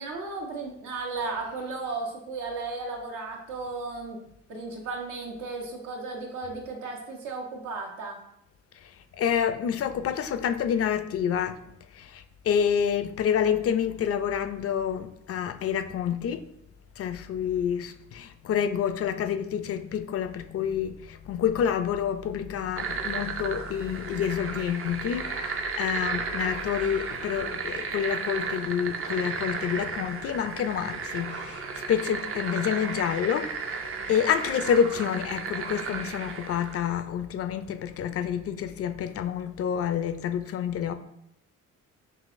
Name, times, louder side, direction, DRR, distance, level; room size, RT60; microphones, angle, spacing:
voice 1, 0.0-4.2 4.5-8.2, right 3 dB, 80° right, 1.1 m, -35 dB
voice 2, 8.8-11.6 11.9-16.4 17.0-40.9, left 8 dB, 50° left, 0.4 m, -28 dB
sound 1, 22.8-36.9, right 5 dB, 45° right, 0.5 m, -34 dB
5.5 x 2.9 x 2.5 m
cardioid pair, 90°, 30 cm